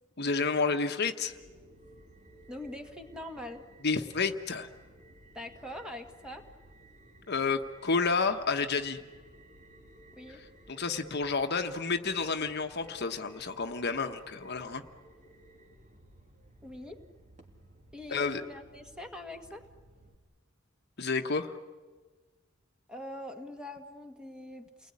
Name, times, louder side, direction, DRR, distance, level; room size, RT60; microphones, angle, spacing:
voice 1, 0.2-1.3 3.8-4.7 7.3-9.0 10.7-14.8 18.1-18.4 21.0-21.5, left 4 dB, 55° left, 6 dB, 1.3 m, -30 dB
sound 1, 1.2-20.1, right 1 dB, 40° right, 2.8 m, -56 dB
voice 2, 2.5-3.6 5.3-6.5 10.2-10.4 16.6-17.0 17.9-19.6 22.9-24.9, left 1 dB, 5° right, 4 dB, 1.8 m, -43 dB
29.5 x 20.5 x 9.8 m, 1.4 s
head